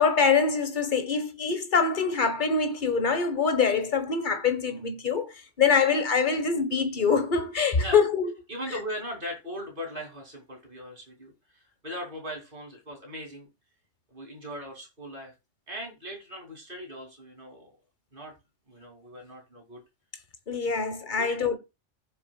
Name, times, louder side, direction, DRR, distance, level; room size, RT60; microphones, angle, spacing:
voice 1, 0.0-8.3 20.5-21.6, left 5 dB, 40° left, 1.3 m, -24 dB
voice 2, 8.5-13.5 14.1-15.3 15.7-17.8 18.1-18.3 18.7-19.8 20.6-20.7 21.1-21.4, equal, 40° right, 3.1 m, -39 dB
15.5 x 6.9 x 2.3 m
omnidirectional pair, 1.3 m